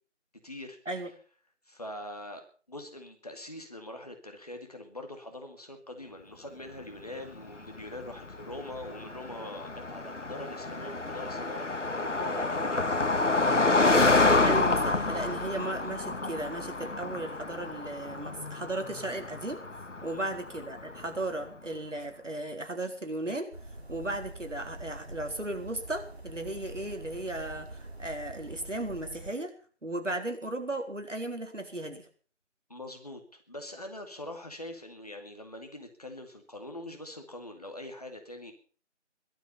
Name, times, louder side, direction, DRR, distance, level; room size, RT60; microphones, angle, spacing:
voice 1, 0.4-0.8 1.6-13.1 20.1-20.4 32.7-33.2 33.5-38.5, left 1 dB, 30° left, 5 dB, 2.4 m, -43 dB
Car passing by, 7.4-21.2, left 3 dB, 85° left, 1.6 m, -28 dB
voice 2, 14.4-19.6 20.0-23.5 23.9-29.5 29.8-32.1, right 1 dB, 85° right, 5 dB, 4.3 m, -35 dB
sound 1, 23.5-29.3, right 1 dB, 60° right, 5.3 m, -44 dB
17.5 x 12.5 x 5.6 m, 0.41 s
figure-of-eight pair, 175°, 36 cm